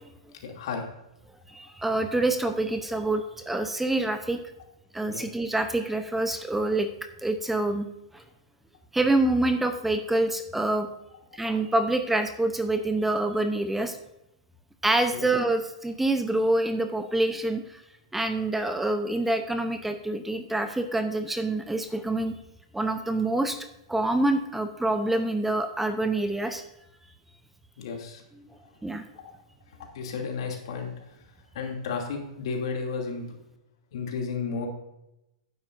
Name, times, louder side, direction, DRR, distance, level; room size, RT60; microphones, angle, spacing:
voice 1, 0.4-0.9 5.1-5.2 15.1-15.3 27.8-28.2 29.1-29.3 29.9-30.9 31.5-33.3 33.9-34.7, left 5 dB, 65° left, 1 dB, 2.8 m, -33 dB
voice 2, 1.5-4.4 4.9-6.9 7.2-7.9 8.1-8.2 8.9-10.9 11.3-14.0 14.8-17.8 18.1-22.4 22.7-23.6 23.9-26.6 28.8-29.0, right 2 dB, 5° right, 8 dB, 0.8 m, -26 dB
12.0 x 9.9 x 2.6 m, 0.89 s
hypercardioid pair, 110°, 3 cm